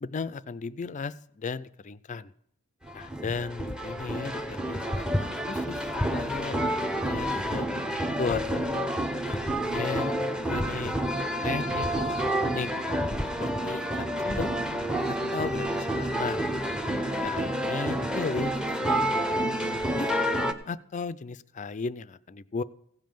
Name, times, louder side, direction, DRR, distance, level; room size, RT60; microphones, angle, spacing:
voice 1, 0.0-2.3 2.9-8.5 9.3-9.4 9.7-10.9 11.4-12.7 13.4-14.5 15.1-16.4 17.2-20.1 20.6-22.6, left 4 dB, 35° left, 16 dB, 0.4 m, -36 dB
sound 1, 2.8-20.5, equal, 5° right, 0.7 m, -29 dB
16.0 x 5.3 x 7.6 m, 0.71 s
head